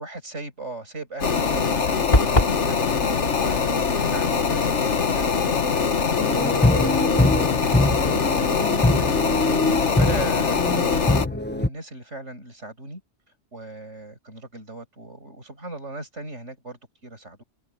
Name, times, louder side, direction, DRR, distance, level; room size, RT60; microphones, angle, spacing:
voice 1, 0.0-6.7 7.6-8.1 9.7-13.0 13.5-17.4, right 2 dB, 80° right, 7.3 m, -38 dB
sound 1, 1.2-11.3, left 5 dB, 75° left, 1.7 m, -23 dB
sound 2, 2.1-2.6, left 1 dB, 35° left, 3.5 m, -19 dB
sound 3, 6.2-11.7, left 1 dB, 10° left, 1.3 m, -23 dB
omnidirectional pair, 1.2 m